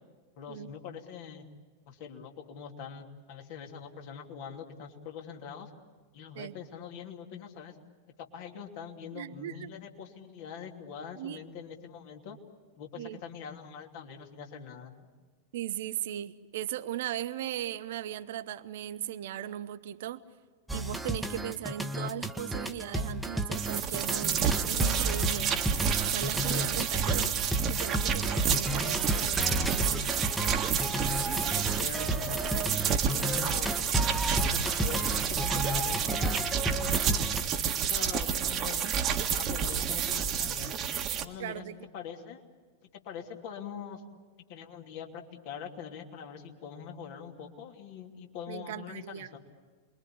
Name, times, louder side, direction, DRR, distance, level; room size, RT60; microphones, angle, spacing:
voice 1, 0.4-1.5 1.9-5.7 6.1-7.8 8.2-12.4 12.8-15.1 31.4-33.7 34.1-36.4 36.8-37.3 37.6-38.9 39.4-40.7 41.1-41.6 41.9-42.5 42.8-44.0 44.5-49.4, left 7 dB, 50° left, 2 dB, 2.8 m, -43 dB
voice 2, 9.1-9.8 11.1-11.4 13.0-13.2 15.5-20.2 20.7-25.6 26.0-30.2 41.4-41.8 48.5-49.3, right 12 dB, 55° right, 13 dB, 0.9 m, -38 dB
sound 1, 20.7-37.4, right 1 dB, 5° right, 1.5 m, -32 dB
sound 2, 23.5-41.2, right 7 dB, 30° right, 1.7 m, -30 dB
27.5 x 22.5 x 8.6 m, 1.5 s
figure-of-eight pair, 90°, 0 cm